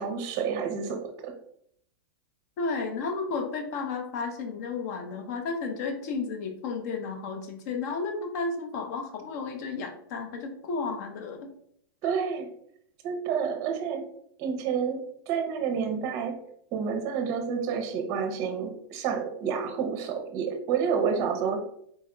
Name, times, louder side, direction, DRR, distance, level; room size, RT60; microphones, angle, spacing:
voice 1, 0.0-1.4 12.0-12.5 13.0-14.0 14.4-16.4 16.7-21.6, right 6 dB, 25° right, 5 dB, 0.7 m, -29 dB
voice 2, 2.6-11.5 12.0-12.1, left 4 dB, 45° left, 5 dB, 0.8 m, -33 dB
4.2 x 3.4 x 3.7 m, 0.70 s
supercardioid pair, 175°, 12 cm